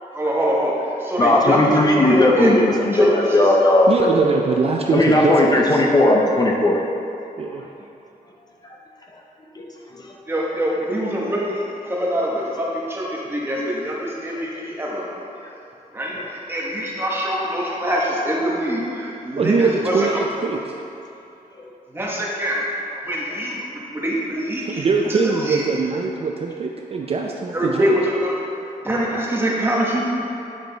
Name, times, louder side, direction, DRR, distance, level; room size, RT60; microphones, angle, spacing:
voice 1, 0.1-2.6 2.9-3.4 10.3-15.1 15.9-20.2 21.9-22.7 23.0-25.6 27.5-28.4 28.8-30.0, equal, 15° right, -4 dB, 1.1 m, -24 dB
voice 2, 1.2-4.3 4.9-6.8 9.6-10.0 16.2-16.3 21.6-21.7, left 1 dB, 25° left, -1 dB, 0.6 m, -17 dB
voice 3, 3.9-5.8 7.4-7.7 19.4-20.6 24.6-27.9, right 4 dB, 40° right, 1 dB, 0.4 m, -22 dB
9.0 x 4.9 x 3.8 m, 2.8 s
wide cardioid pair, 165°, 15 cm